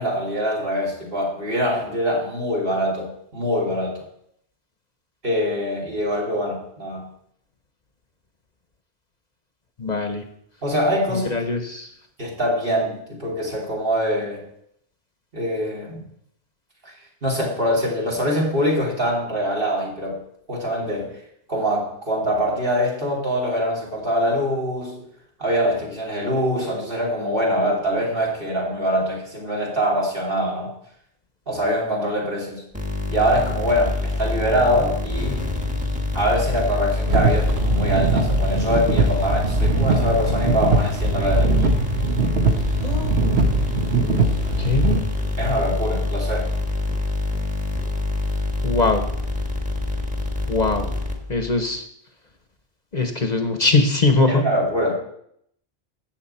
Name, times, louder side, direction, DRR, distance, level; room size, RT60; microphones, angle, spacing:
voice 1, 0.0-4.0 5.2-7.1 10.6-11.3 12.2-14.4 15.3-16.0 16.8-16.9 17.2-20.2 20.5-21.2 21.5-25.0 25.4-30.7 31.5-32.6 33.1-35.5 36.1-41.7 45.4-46.5 54.3-55.0, equal, 55° right, -3 dB, 3.0 m, -23 dB
voice 2, 9.8-10.3 11.1-11.9 42.8-43.2 44.6-45.0 48.6-49.1 50.5-50.9 51.3-51.8 52.9-54.4, left 3 dB, 40° left, 6 dB, 1.0 m, -21 dB
sound 1, 32.7-51.5, left 2 dB, 5° right, 1.4 m, -26 dB
sound 2, 37.1-45.0, right 3 dB, 75° right, 1.4 m, -21 dB
13.5 x 8.1 x 4.3 m, 0.71 s
omnidirectional pair, 1.1 m